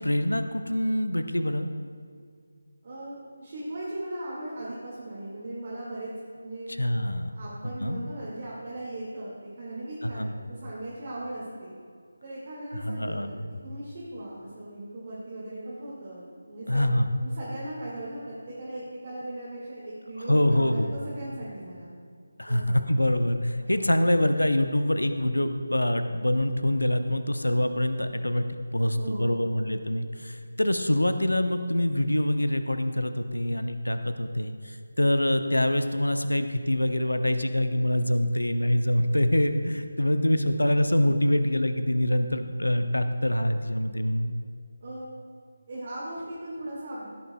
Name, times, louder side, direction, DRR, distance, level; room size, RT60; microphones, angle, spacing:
voice 1, 0.0-1.7 6.8-7.4 7.6-8.0 10.0-10.4 12.8-13.5 16.7-17.1 20.3-20.9 22.4-28.4 28.7-44.3, left 1 dB, 80° left, 8 dB, 0.7 m, -25 dB
voice 2, 2.8-6.1 6.4-6.7 7.3-11.7 12.2-13.4 13.6-16.8 17.2-21.9 22.5-22.8 23.6-23.9 28.9-29.5 44.8-45.1 45.7-47.1, right 1 dB, 35° right, -7 dB, 2.0 m, -38 dB
15.0 x 8.5 x 2.3 m, 2.2 s
figure-of-eight pair, 160°, 0 cm